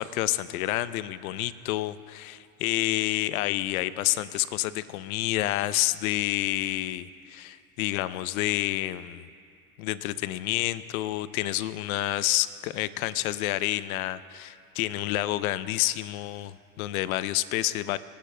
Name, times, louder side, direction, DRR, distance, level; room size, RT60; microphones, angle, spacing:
voice 1, 0.0-9.3 9.8-18.0, left 15 dB, 70° left, 16 dB, 0.6 m, -29 dB
29.5 x 10.5 x 2.2 m, 2.3 s
hypercardioid pair, 100°, 44 cm